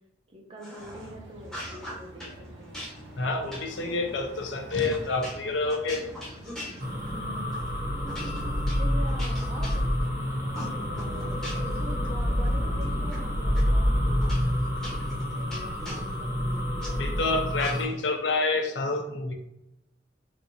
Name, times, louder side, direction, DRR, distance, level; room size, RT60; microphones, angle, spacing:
voice 1, 0.3-3.6 7.1-7.8 8.3-10.1 10.9-17.2, right 1 dB, 30° right, 0 dB, 0.6 m, -45 dB
sound 1, 0.6-1.1 1.4-2.4 2.7-7.2 7.5-7.7 8.1-10.2 10.5-11.8 12.2-13.2 13.5-13.6 14.2-16.9 17.6-18.1, equal, 5° left, 0.8 m, -42 dB
sound 2, 0.8-14.2, equal, 80° right, 0.6 m, -44 dB
voice 2, 3.2-6.0 17.0-19.3, left 3 dB, 80° left, 4 dB, 0.5 m, -28 dB
sound 3, 6.8-17.8, equal, 55° right, 1.1 m, -28 dB
3.4 x 2.6 x 2.7 m, 0.84 s
head